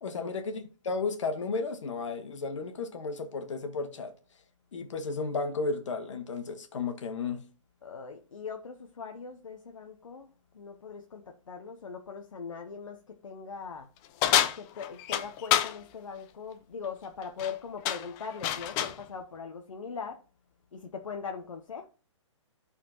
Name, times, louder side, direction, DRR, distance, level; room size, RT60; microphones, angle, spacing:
voice 1, 0.0-4.1 4.7-7.4, left 4 dB, 70° left, 1.6 m, -33 dB
voice 2, 7.8-13.9 14.6-20.2 20.7-21.9, left 6 dB, 85° left, 0.9 m, -41 dB
sound 1, 14.2-15.8 17.2-17.5 17.8-19.0, left 11 dB, 20° left, 0.4 m, -27 dB
12.5 x 4.3 x 2.9 m
hypercardioid pair, 145°, 16 cm